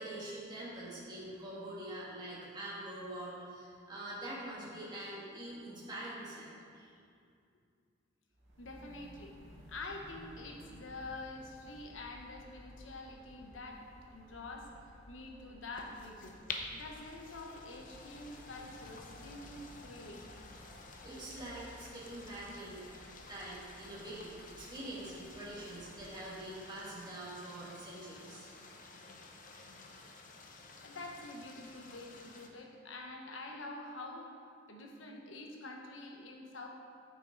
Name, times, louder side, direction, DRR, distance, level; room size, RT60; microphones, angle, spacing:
voice 1, 0.0-6.9 21.0-22.9 23.3-28.5, right 1 dB, 20° right, -8 dB, 2.1 m, -45 dB
sound 1, 8.3-26.6, equal, 80° right, 1.9 m, -57 dB
voice 2, 8.6-9.3 9.7-13.8 14.1-14.7 15.1-16.4 16.7-20.4 30.8-34.4 34.7-36.7, left 2 dB, 80° left, 0 dB, 1.1 m, -47 dB
sound 2, 15.7-32.5, left 3 dB, 45° left, 0.7 m, -51 dB
9.0 x 6.2 x 4.0 m, 2.3 s
head